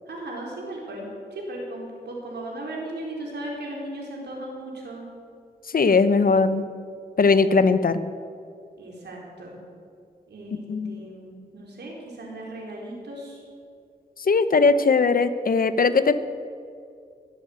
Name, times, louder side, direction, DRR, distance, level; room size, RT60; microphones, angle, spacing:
voice 1, 0.1-5.1 8.8-9.6 10.3-10.6 10.9-13.4, right 1 dB, 90° right, -2 dB, 4.1 m, -36 dB
voice 2, 5.7-6.6 7.2-8.0 10.5-11.0 14.2-16.1, left 4 dB, 60° left, 12 dB, 0.9 m, -19 dB
20.5 x 8.4 x 7.9 m, 2.3 s
wide cardioid pair, 80°, 17 cm